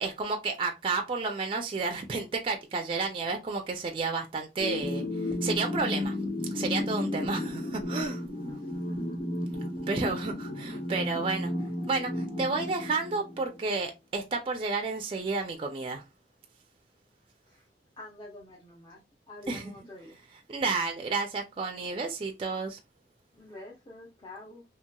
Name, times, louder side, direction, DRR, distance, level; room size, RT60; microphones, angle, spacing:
voice 1, 0.0-5.1 5.4-6.2 6.5-8.2 9.9-11.5 11.9-16.0 19.5-19.7 20.5-22.8, right 4 dB, 30° right, 0.4 m, -31 dB
sound 1, 4.6-13.6, left 1 dB, 45° left, 1.4 m, -33 dB
voice 2, 8.5-8.9 15.2-15.3 17.5-17.7 18.0-20.2 23.3-24.6, left 2 dB, 25° left, 0.6 m, -47 dB
2.8 x 2.8 x 2.2 m
head